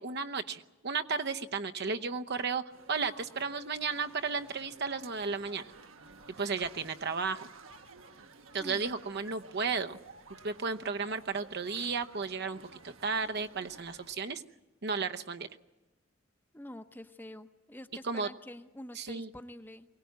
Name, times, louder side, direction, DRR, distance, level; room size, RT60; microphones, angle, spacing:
voice 1, 0.0-2.6 2.9-5.6 6.4-7.5 8.5-10.0 10.4-14.4 14.8-15.5 18.0-18.3 19.0-19.3, right 5 dB, 55° right, 8 dB, 0.9 m, -34 dB
sound 1, 2.7-14.1, right 4 dB, 85° right, 1.4 m, -53 dB
voice 2, 16.5-19.9, left 1 dB, 10° left, 9 dB, 0.8 m, -47 dB
23.0 x 18.0 x 9.4 m, 1.0 s
head